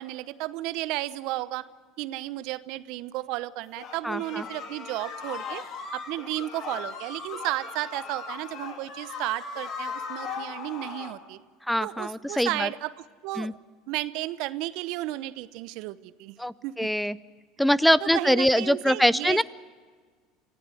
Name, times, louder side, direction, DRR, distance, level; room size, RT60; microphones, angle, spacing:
voice 1, 0.0-1.7 2.0-5.6 5.9-11.4 11.8-13.6 13.9-16.9 18.0-19.4, right 17 dB, 65° right, 16 dB, 0.8 m, -33 dB
sound 1, 3.8-11.2, left 5 dB, 55° left, 3.6 m, -38 dB
voice 2, 4.0-4.4 11.7-12.7 13.4-13.5 16.4-17.2 17.6-19.4, equal, ahead, 19 dB, 0.6 m, -23 dB
25.0 x 16.0 x 7.8 m, 1.5 s
hypercardioid pair, 85°, 0 cm